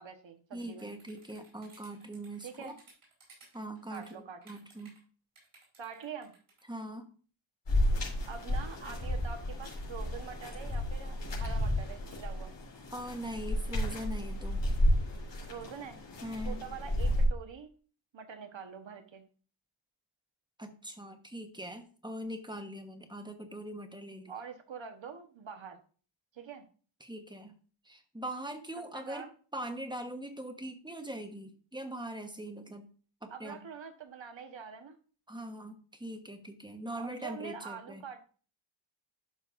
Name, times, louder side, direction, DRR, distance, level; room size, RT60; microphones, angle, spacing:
voice 1, 0.0-0.9 2.4-2.7 3.9-4.4 5.8-6.3 8.3-12.5 15.5-16.0 16.4-17.7 18.1-19.3 24.3-25.8 26.3-26.7 28.8-29.3 33.3-35.0 37.0-38.2, right 6 dB, 65° right, 6 dB, 1.2 m, -45 dB
voice 2, 0.5-2.7 3.5-5.0 6.6-7.1 12.9-14.6 16.2-16.6 20.6-24.3 27.0-27.5 27.8-29.3 29.5-32.9 33.2-33.6 35.3-38.0, right 1 dB, 10° right, 6 dB, 1.1 m, -41 dB
sound 1, 0.6-5.0 5.3-6.6, right 3 dB, 85° right, 4.6 m, -59 dB
sound 2, 7.7-17.3, left 1 dB, 60° left, 3.4 m, -32 dB
11.5 x 5.4 x 2.5 m, 0.39 s
wide cardioid pair, 105°, 49 cm